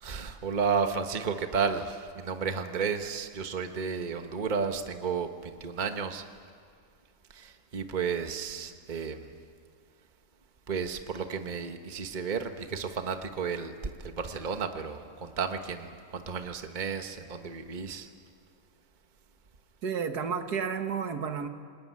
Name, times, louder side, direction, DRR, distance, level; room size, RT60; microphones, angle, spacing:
voice 1, 0.0-6.2 7.3-9.2 10.7-13.7 14.0-18.1, right 5 dB, 30° right, 6 dB, 1.3 m, -32 dB
voice 2, 19.8-21.5, right 6 dB, 85° right, 7 dB, 2.0 m, -31 dB
28.5 x 19.5 x 9.5 m, 2.2 s
omnidirectional pair, 1.6 m